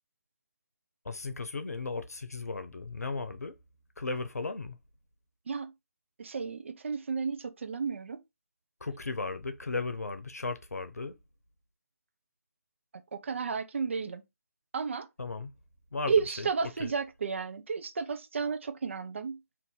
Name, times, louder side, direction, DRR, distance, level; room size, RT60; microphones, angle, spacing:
voice 1, 1.0-3.5 4.0-4.8 8.8-11.1 15.2-15.5 15.9-16.5 16.8-16.9, left 3 dB, 75° left, 0.7 m, -36 dB
voice 2, 6.2-8.2 13.1-14.2 14.7-15.1 16.1-19.4, right 5 dB, 50° right, 0.5 m, -32 dB
2.7 x 2.6 x 3.6 m
figure-of-eight pair, 150°, 9 cm